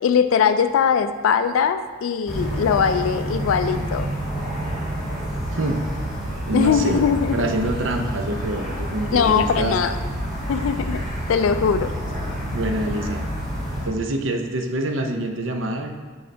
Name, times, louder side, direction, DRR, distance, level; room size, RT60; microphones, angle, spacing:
voice 1, 0.0-4.1 6.5-7.5 9.1-10.0 10.5-11.0 11.3-11.9, left 7 dB, 80° left, 9 dB, 0.3 m, -20 dB
sound 1, 2.2-13.9, right 1 dB, ahead, 1.9 m, -28 dB
voice 2, 6.5-7.0 7.3-9.8 11.8-11.9 12.5-13.2 13.8-15.9, right 1 dB, 70° right, 4 dB, 0.6 m, -26 dB
6.4 x 5.5 x 3.3 m, 1.5 s
head